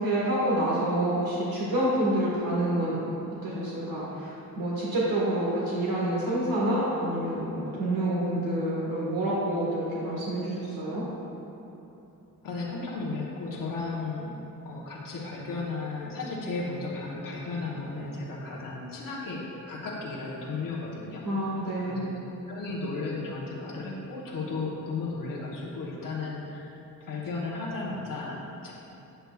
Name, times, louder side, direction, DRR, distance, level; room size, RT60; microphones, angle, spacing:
voice 1, 0.0-3.0 3.4-11.0 21.2-22.0, right 1 dB, 85° right, -7 dB, 1.5 m, -28 dB
voice 2, 12.4-14.3 14.6-21.5 21.9-22.1 22.3-26.7 27.0-28.7, left 3 dB, 70° left, -4 dB, 1.0 m, -34 dB
8.0 x 7.7 x 2.3 m, 3.0 s
wide cardioid pair, 115°, 35 cm